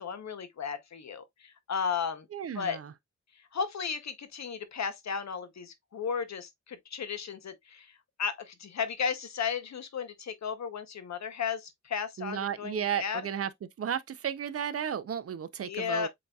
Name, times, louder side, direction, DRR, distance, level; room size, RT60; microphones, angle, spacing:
voice 1, 0.0-2.3 2.6-2.8 3.5-7.9 8.2-13.2 15.6-16.1, left 6 dB, 65° left, 0.8 m, -34 dB
voice 2, 2.3-2.9 12.2-13.5 13.8-16.1, right 8 dB, 50° right, 0.5 m, -33 dB
7.7 x 2.7 x 2.2 m
wide cardioid pair, 175°, 30 cm